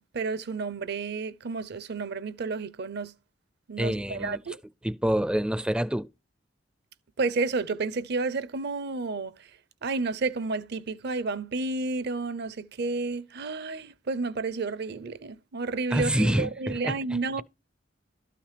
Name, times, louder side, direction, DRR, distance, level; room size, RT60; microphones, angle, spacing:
voice 1, 0.0-3.1 3.7-4.6 7.2-9.3 9.8-17.4, right 3 dB, 60° right, 0.6 m, -31 dB
voice 2, 3.8-4.4 4.8-6.1 15.9-17.0, equal, 5° right, 0.4 m, -26 dB
12.5 x 5.8 x 3.3 m
head